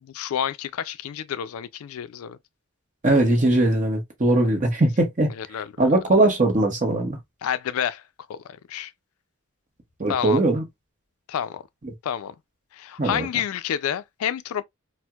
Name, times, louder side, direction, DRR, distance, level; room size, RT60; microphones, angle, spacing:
voice 1, 0.0-2.4 5.4-5.9 7.4-8.0 8.3-8.4 8.7-8.9 10.1-10.4 11.3-11.6 12.0-12.3 12.7-14.6, left 9 dB, 70° left, 0.3 m, -29 dB
voice 2, 3.0-5.3 5.8-7.2 10.0-10.6 11.8-11.9 13.0-13.3, right 2 dB, 35° right, 1.0 m, -20 dB
4.3 x 2.1 x 2.3 m
head